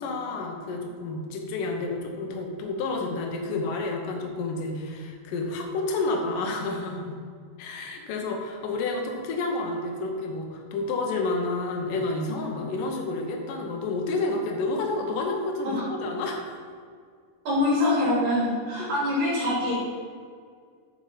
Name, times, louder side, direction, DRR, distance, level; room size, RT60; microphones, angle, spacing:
voice 1, 0.0-7.2 7.6-16.6 18.8-18.9, left 3 dB, 75° left, 2 dB, 2.7 m, -30 dB
voice 2, 17.4-19.7, left 1 dB, 75° right, -8 dB, 4.5 m, -24 dB
8.3 x 7.1 x 5.0 m, 2.1 s
omnidirectional pair, 3.9 m